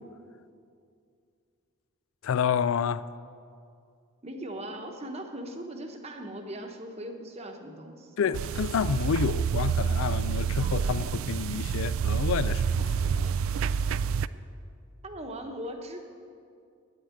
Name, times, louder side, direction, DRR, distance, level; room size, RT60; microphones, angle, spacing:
voice 1, 2.2-3.0 8.2-13.3, left 7 dB, 70° left, 0.3 m, -29 dB
voice 2, 4.2-8.1 15.0-16.0, right 1 dB, 30° right, 1.0 m, -39 dB
sound 1, 8.3-14.3, right 7 dB, 70° right, 0.3 m, -28 dB
10.0 x 8.2 x 9.2 m
head